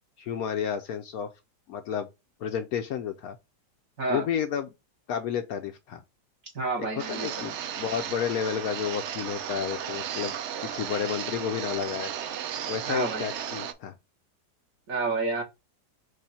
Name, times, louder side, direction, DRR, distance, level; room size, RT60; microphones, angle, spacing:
voice 1, 0.2-1.3 1.7-2.1 2.4-3.4 4.1-4.7 5.1-6.0 6.9-10.4 10.6-12.1 12.7-13.9, left 8 dB, 70° left, 0.9 m, -31 dB
voice 2, 6.5-7.5 12.9-13.3 14.9-15.4, right 3 dB, 50° right, 1.9 m, -29 dB
sound 1, 7.0-13.7, right 9 dB, 85° right, 0.6 m, -35 dB
4.9 x 2.6 x 4.1 m
omnidirectional pair, 1.8 m